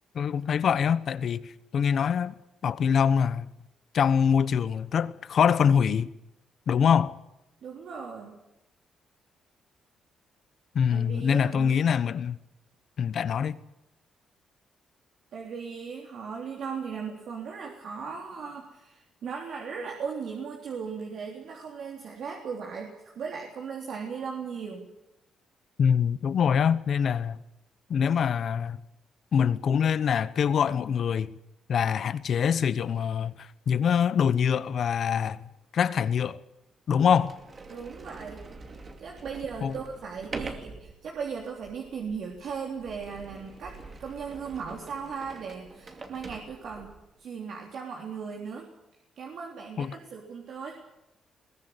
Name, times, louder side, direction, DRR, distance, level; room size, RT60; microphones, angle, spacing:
voice 1, 0.1-2.4 2.6-3.5 3.9-6.1 6.7-7.2 10.7-12.4 13.0-13.6 25.8-27.4 27.9-28.8 29.3-31.3 31.7-35.4 35.7-36.4 36.9-37.4 39.6-39.8 49.8-50.0, left 7 dB, 50° left, 1.0 m, -24 dB
voice 2, 7.6-8.4 10.9-11.8 15.3-24.9 37.7-38.5 39.0-46.9 47.2-48.7 49.2-50.8, right 6 dB, 60° right, 3.5 m, -37 dB
Sliding door, 36.6-36.7 37.2-47.1, right 3 dB, 30° right, 2.5 m, -44 dB
22.0 x 18.0 x 8.3 m
cardioid pair, 135°, 0 cm